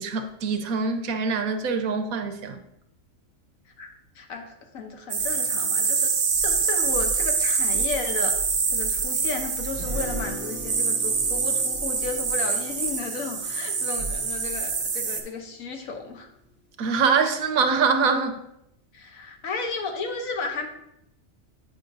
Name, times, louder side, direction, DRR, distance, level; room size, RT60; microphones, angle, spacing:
voice 1, 0.0-2.6 16.8-18.4, right 5 dB, 90° right, 6 dB, 1.2 m, -24 dB
voice 2, 4.2-6.1 6.4-8.3 8.7-16.3 18.9-20.7, left 4 dB, 75° left, 3 dB, 1.3 m, -33 dB
sound 1, 5.1-15.2, right 5 dB, 65° right, 1.2 m, -25 dB
Guitar, 9.7-15.8, left 1 dB, 10° left, 2.8 m, -43 dB
8.6 x 5.4 x 2.6 m, 0.81 s
omnidirectional pair, 1.4 m